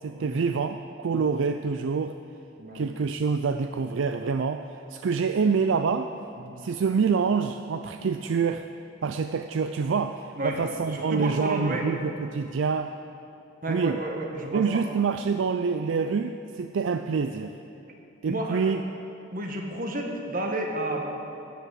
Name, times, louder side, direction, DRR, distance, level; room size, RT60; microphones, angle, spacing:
voice 1, 0.0-2.1 2.7-4.6 4.9-6.1 6.6-8.7 9.0-12.9 13.7-14.0 14.5-17.5 18.2-18.8, right 5 dB, 70° right, 7 dB, 0.4 m, -26 dB
voice 2, 10.9-11.9 13.6-14.8 18.2-18.6 19.3-21.0, right 1 dB, 45° right, 2 dB, 1.6 m, -31 dB
13.0 x 8.2 x 7.7 m, 2.8 s
head